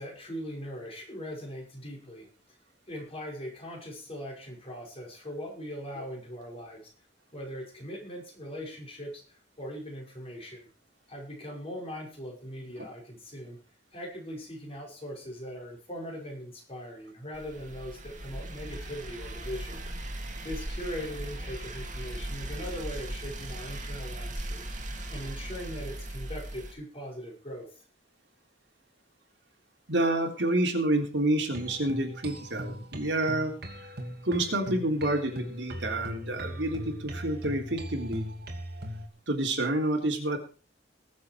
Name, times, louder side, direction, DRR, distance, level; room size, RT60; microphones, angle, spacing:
voice 1, 0.0-2.3 2.9-6.9 7.3-9.2 9.6-10.7 11.1-13.6 13.9-19.8 20.4-24.6 25.1-27.8, equal, 35° left, -1 dB, 5.6 m, -40 dB
sound 1, 17.3-26.7, right 1 dB, 45° right, 3.0 m, -38 dB
voice 2, 29.9-33.5 34.2-38.3 39.3-40.4, right 1 dB, 80° right, 2 dB, 3.4 m, -28 dB
sound 2, 31.5-39.1, equal, 60° right, 2.9 m, -40 dB
20.5 x 7.6 x 4.6 m, 0.37 s
head